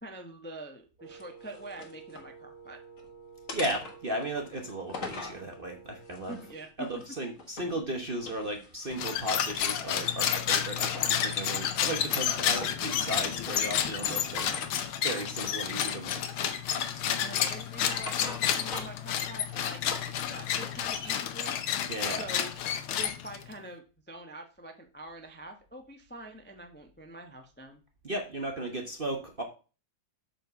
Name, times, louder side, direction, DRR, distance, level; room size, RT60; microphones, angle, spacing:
voice 1, 0.0-2.8 6.3-6.9 17.2-21.5 22.2-22.5 23.0-27.8, right 1 dB, 10° left, 4 dB, 0.5 m, -45 dB
Wind instrument woodwind instrument, 1.0-6.8, right 5 dB, 20° right, 2.8 m, -51 dB
sound 1, 1.1-2.3 2.7-3.1 3.5-5.4 6.0-7.8 8.1-10.0 10.4-11.2 11.5-12.9 14.3-14.7 15.4-15.6 16.0-16.7 17.1-19.1 19.4-20.8, left 4 dB, 45° left, 1.7 m, -44 dB
voice 2, 3.5-6.4 6.8-14.5 15.0-17.2 21.9-22.3 28.0-29.4, right 1 dB, 40° right, 2 dB, 0.8 m, -35 dB
sound 2, 8.9-23.5, left 9 dB, 85° left, 1.7 m, -30 dB
8.0 x 4.4 x 5.7 m, 0.34 s
omnidirectional pair, 2.2 m